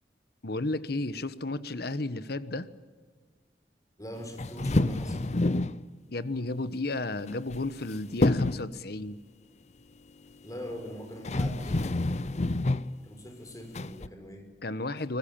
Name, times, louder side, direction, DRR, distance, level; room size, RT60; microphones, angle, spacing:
voice 1, 0.4-2.7 6.1-9.2 14.6-15.2, left 2 dB, 60° left, 14 dB, 1.2 m, -33 dB
voice 2, 4.0-5.3 10.4-12.7 13.0-14.5, equal, 20° left, 5 dB, 5.2 m, -42 dB
sound 1, 4.4-5.8 7.3-7.9 8.2-8.7 10.8-10.9 11.2-12.9 13.8-14.1, left 2 dB, 40° left, 0.7 m, -27 dB
24.5 x 20.0 x 8.9 m, 1.5 s
head